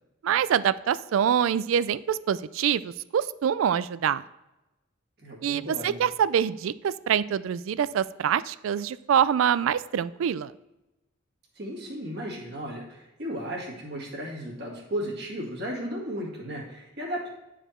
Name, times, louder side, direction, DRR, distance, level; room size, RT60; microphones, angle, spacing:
voice 1, 0.2-4.2 5.4-10.5, right 8 dB, 75° right, 17 dB, 0.3 m, -25 dB
voice 2, 5.2-6.1 11.6-17.3, equal, 55° right, -3 dB, 2.0 m, -35 dB
9.9 x 5.0 x 4.4 m, 0.97 s
head